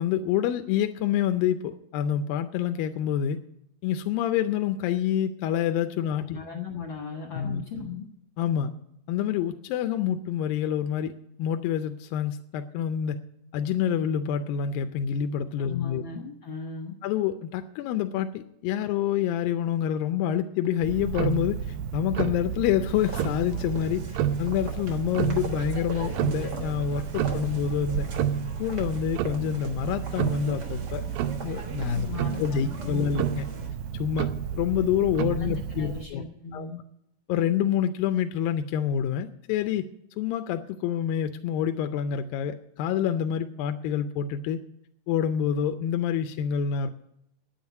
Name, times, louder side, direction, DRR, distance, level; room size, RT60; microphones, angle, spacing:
voice 1, 0.0-3.4 3.8-6.4 7.3-7.6 8.4-8.7 9.1-13.2 13.5-16.0 17.0-28.1 28.6-31.0 31.4-32.1 32.4-33.4 33.9-36.2 36.5-36.7 37.3-39.9 40.2-44.6 45.1-46.9, left 9 dB, 90° left, 8 dB, 2.4 m, -27 dB
voice 2, 6.3-8.0 15.6-16.9 31.9-33.2 35.3-36.8, left 6 dB, 50° left, 2 dB, 1.5 m, -37 dB
Tick-tock, 20.8-36.1, right 8 dB, 75° right, 1.8 m, -31 dB
sound 1, 22.9-33.7, right 2 dB, 50° right, 1.2 m, -42 dB
9.5 x 8.9 x 9.4 m, 0.77 s
omnidirectional pair, 4.0 m